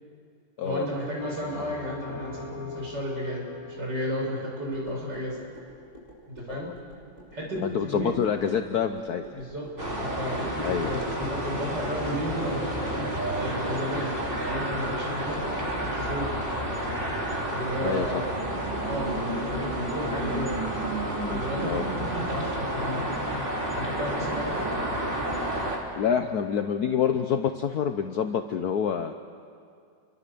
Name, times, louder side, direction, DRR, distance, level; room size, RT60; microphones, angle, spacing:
voice 1, 0.6-5.4 6.4-6.7 7.3-8.1 9.3-9.7 10.0-13.0 13.4-14.1 14.5-15.4 15.8-16.3 17.5-18.4 18.8-20.5 21.3-23.0 23.8-24.7, equal, 60° right, -2 dB, 7.2 m, -33 dB
Bell, 1.2-5.8, left 2 dB, 10° right, 3.7 m, -43 dB
sound 1, 4.7-11.2, right 1 dB, 40° left, 7.3 m, -50 dB
voice 2, 7.6-9.2 10.6-11.0 17.8-18.2 21.6-21.9 25.9-29.1, left 8 dB, 60° left, 7 dB, 1.2 m, -27 dB
sound 2, 9.8-25.8, right 1 dB, 25° right, 3.4 m, -30 dB
29.0 x 24.5 x 6.9 m, 2.3 s
omnidirectional pair, 2.1 m